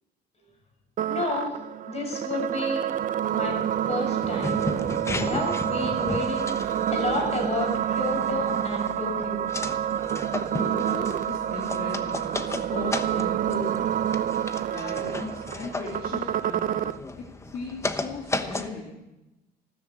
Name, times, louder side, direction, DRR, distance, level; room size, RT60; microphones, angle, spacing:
sound 1, 1.0-17.0, right 10 dB, 55° right, 0.7 m, -28 dB
voice 1, 1.1-1.5 1.8-2.8 3.3-3.6 3.9-4.7 5.2-9.4, left 2 dB, 40° left, 2 dB, 6.9 m, -31 dB
sound 2, 4.2-18.7, left 2 dB, 15° left, 1.1 m, -35 dB
voice 2, 10.5-13.9 14.4-19.0, left 4 dB, 60° left, -2 dB, 3.2 m, -38 dB
15.0 x 13.0 x 7.4 m, 0.98 s
cardioid pair, 110°, 17 cm